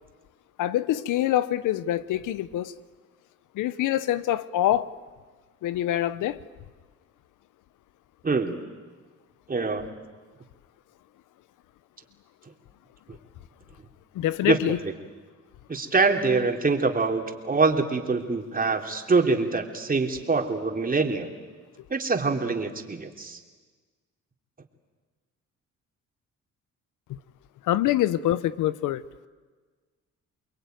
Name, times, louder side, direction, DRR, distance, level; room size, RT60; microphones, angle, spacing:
voice 1, 0.6-2.7 3.5-4.9 5.6-6.4 14.1-14.8 27.7-29.0, left 13 dB, 90° left, 16 dB, 1.0 m, -25 dB
voice 2, 8.2-8.5 9.5-9.9 14.4-14.6 15.7-21.3 21.9-23.4, right 4 dB, 30° right, 4 dB, 3.3 m, -24 dB
29.0 x 22.0 x 9.3 m, 1.4 s
cardioid pair, 90°, 30 cm